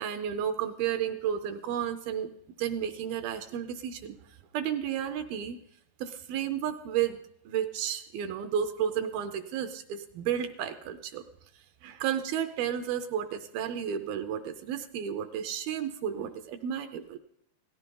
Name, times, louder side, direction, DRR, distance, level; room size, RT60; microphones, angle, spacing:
voice 1, 0.0-2.3 2.6-4.2 4.5-5.6 6.0-11.2 11.8-17.2, right 9 dB, 80° right, 8 dB, 2.2 m, -32 dB
17.5 x 14.5 x 3.8 m, 0.76 s
omnidirectional pair, 4.8 m